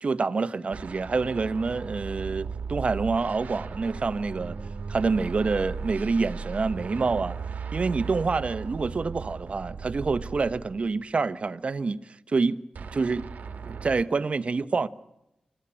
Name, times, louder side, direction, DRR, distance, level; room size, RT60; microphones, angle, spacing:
voice 1, 0.0-4.6 4.9-7.4 7.7-12.0 12.3-12.6 12.9-13.3 13.6-14.9, right 4 dB, 50° right, 1.0 m, -27 dB
sound 1, 0.7-11.0 12.7-14.0, right 5 dB, 85° right, 1.3 m, -36 dB
26.0 x 15.0 x 8.8 m
wide cardioid pair, 85°, 3 cm